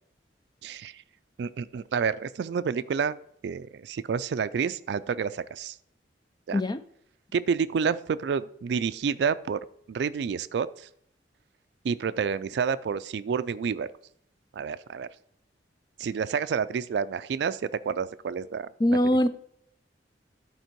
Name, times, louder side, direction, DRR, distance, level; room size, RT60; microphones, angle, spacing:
voice 1, 0.6-1.0 1.4-3.2 3.4-5.8 6.5-6.6 7.3-9.6 9.9-10.9 11.8-13.9 14.5-15.1 16.0-18.7, right 6 dB, 70° right, 0.3 m, -29 dB
voice 2, 18.8-19.3, left 1 dB, 25° left, 0.4 m, -22 dB
11.0 x 4.4 x 4.5 m
head